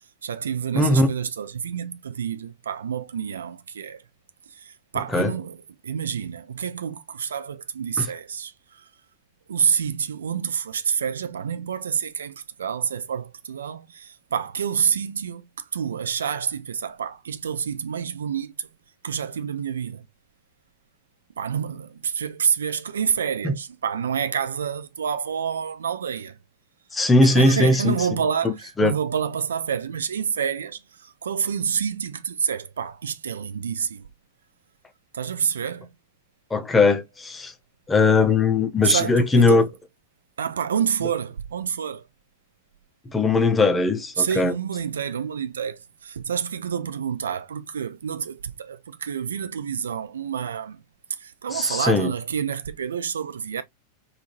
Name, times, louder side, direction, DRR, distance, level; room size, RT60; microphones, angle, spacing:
voice 1, 0.2-4.0 4.5-5.6 5.8-8.8 9.5-18.7 19.0-20.1 21.4-26.4 27.2-34.1 35.1-35.9 38.8-39.7 40.4-42.0 44.2-50.8 51.1-53.6, right 7 dB, 65° right, 0.3 m, -28 dB
voice 2, 0.7-1.1 5.1-5.3 8.0-8.1 23.4-23.5 26.9-28.0 28.4-28.9 36.5-37.5 37.9-39.7 43.1-44.5 51.5-52.1, left 3 dB, 10° left, 0.6 m, -19 dB
3.5 x 2.4 x 2.7 m
figure-of-eight pair, 90°, 0 cm